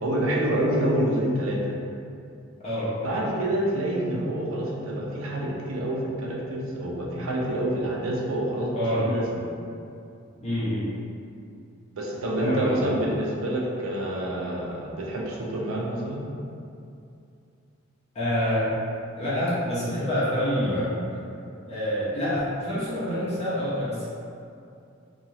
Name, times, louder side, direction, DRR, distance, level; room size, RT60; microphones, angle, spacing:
voice 1, 0.0-1.7 3.0-9.2 11.9-16.2 20.6-20.8, right 1 dB, 85° right, -3 dB, 0.5 m, -27 dB
voice 2, 2.6-3.2 8.7-9.1 10.4-10.9 12.4-12.9 18.1-18.7 19.2-20.9 21.7-24.1, equal, 30° left, -11 dB, 0.8 m, -27 dB
2.9 x 2.3 x 2.8 m, 2.5 s
head